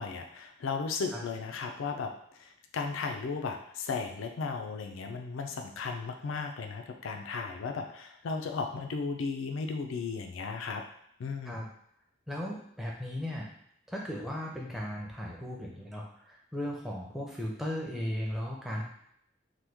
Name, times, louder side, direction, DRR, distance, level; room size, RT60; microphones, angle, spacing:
voice 1, 0.0-10.8 11.2-11.7, left 4 dB, 85° left, 4 dB, 0.4 m, -35 dB
voice 2, 12.3-13.5 13.9-18.9, left 1 dB, ahead, -3 dB, 0.5 m, -36 dB
3.0 x 2.2 x 3.4 m, 0.70 s
head